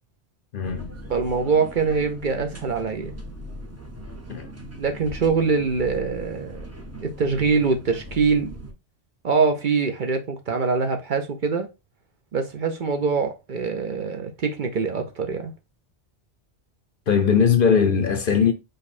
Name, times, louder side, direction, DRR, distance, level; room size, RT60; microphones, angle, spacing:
voice 1, 0.5-0.9 4.3-4.5 17.1-18.5, left 6 dB, 55° left, 0.7 m, -19 dB
sound 1, 0.6-8.7, equal, 15° right, 0.7 m, -39 dB
voice 2, 1.1-3.2 4.8-6.7 7.0-8.5 9.2-11.7 12.3-15.5, right 5 dB, 50° right, 0.8 m, -24 dB
5.2 x 2.3 x 4.1 m
omnidirectional pair, 1.2 m